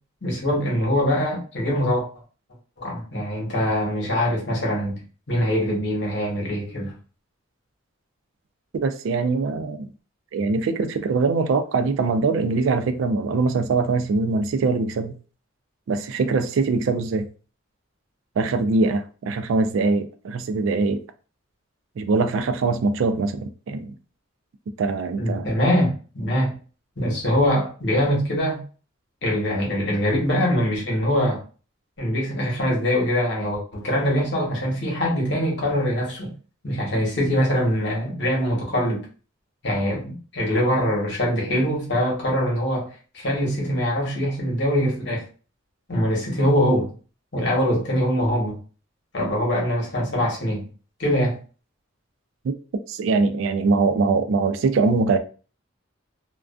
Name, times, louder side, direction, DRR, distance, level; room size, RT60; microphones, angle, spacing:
voice 1, 0.2-2.1 2.8-5.0 5.3-6.9 25.2-26.6 27.0-28.6 29.2-31.4 32.0-36.3 36.6-39.0 39.6-42.9 43.1-45.2 45.9-46.9 47.3-48.6 49.1-50.6 51.0-51.4, equal, 55° left, 1.0 m, -23 dB
voice 2, 8.8-9.9 10.3-15.2 15.9-17.3 18.4-21.0 22.0-23.9 24.8-25.5 52.4-52.5 52.9-55.2, right 4 dB, 70° right, 0.3 m, -22 dB
2.4 x 2.2 x 2.3 m
head